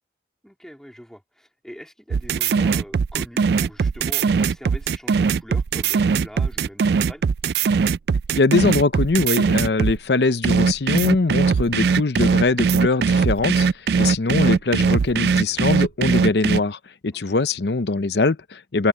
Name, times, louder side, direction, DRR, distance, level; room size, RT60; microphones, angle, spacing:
voice 1, 0.4-7.3 17.1-17.4, equal, 5° left, 3.4 m, -42 dB
sound 1, 2.1-10.0 10.4-16.6, right 5 dB, 65° right, 0.3 m, -20 dB
voice 2, 8.4-18.9, left 3 dB, 75° left, 0.7 m, -22 dB
head